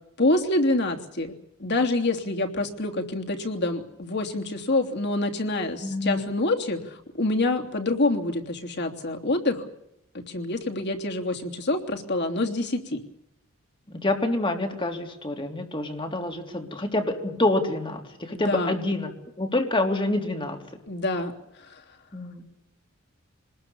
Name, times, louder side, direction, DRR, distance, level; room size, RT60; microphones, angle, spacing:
voice 1, 0.2-1.3 1.6-9.6 10.1-13.0 18.3-18.8 20.9-21.3 21.7-21.8, left 2 dB, 55° left, 3 dB, 3.2 m, -26 dB
voice 2, 5.8-6.2 13.9-20.6 22.1-22.4, left 2 dB, 25° left, 4 dB, 3.5 m, -27 dB
26.0 x 20.5 x 7.2 m, 0.81 s
head